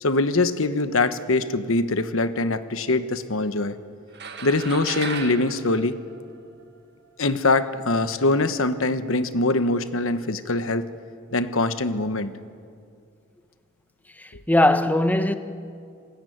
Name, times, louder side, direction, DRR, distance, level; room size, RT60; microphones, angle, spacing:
voice 1, 0.0-3.8 4.4-6.0 7.2-10.9 11.3-12.3, left 2 dB, 70° left, 1.2 m, -23 dB
sound 1, 4.1-6.8, right 6 dB, 55° right, 1.6 m, -36 dB
voice 2, 14.2-15.3, left 1 dB, 10° left, 1.1 m, -20 dB
26.5 x 19.0 x 9.4 m
head